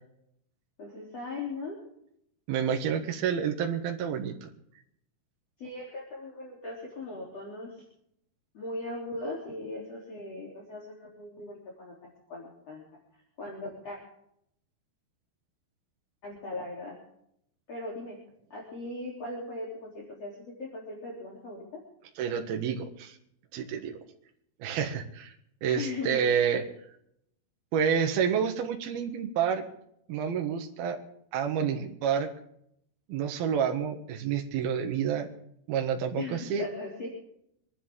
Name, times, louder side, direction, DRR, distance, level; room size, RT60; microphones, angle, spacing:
voice 1, 0.8-1.8 5.6-7.8 8.5-12.9 13.1-14.0 16.2-17.0 17.7-18.2 18.5-21.8 25.8-26.2 36.2-37.1, left 2 dB, 40° left, -3 dB, 4.3 m, -39 dB
voice 2, 2.5-4.5 22.2-23.2 23.5-24.0 24.6-25.3 25.6-26.6 27.7-29.7 30.1-31.0 31.3-32.3 33.1-35.3 35.7-36.7, right 7 dB, 65° right, 3 dB, 3.3 m, -29 dB
26.0 x 11.0 x 3.8 m, 0.73 s
omnidirectional pair, 4.9 m